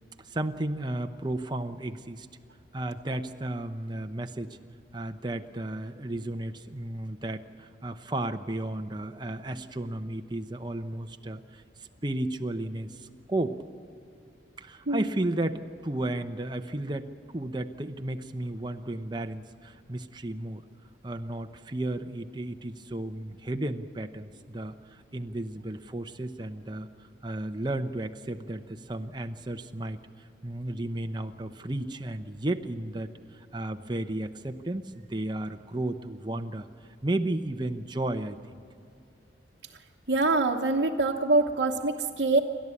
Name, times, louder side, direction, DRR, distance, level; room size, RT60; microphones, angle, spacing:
voice 1, 0.2-2.3 2.7-4.6 4.9-11.6 12.0-13.6 14.6-20.6 21.0-26.9 27.2-33.1 33.5-36.7 37.0-38.4, right 1 dB, 25° right, 6 dB, 0.9 m, -33 dB
voice 2, 40.1-42.4, right 2 dB, 65° right, -3 dB, 1.1 m, -24 dB
29.0 x 12.5 x 8.6 m, 2.6 s
head